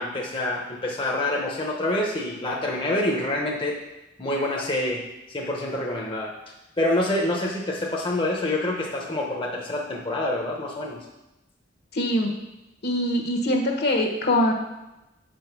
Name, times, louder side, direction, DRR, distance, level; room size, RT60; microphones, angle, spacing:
voice 1, 0.0-3.8 4.2-11.0, left 1 dB, 30° left, -1 dB, 0.9 m, -27 dB
voice 2, 11.9-12.3 12.8-14.5, left 1 dB, 60° left, 1 dB, 1.3 m, -23 dB
7.4 x 5.2 x 6.1 m, 0.98 s
head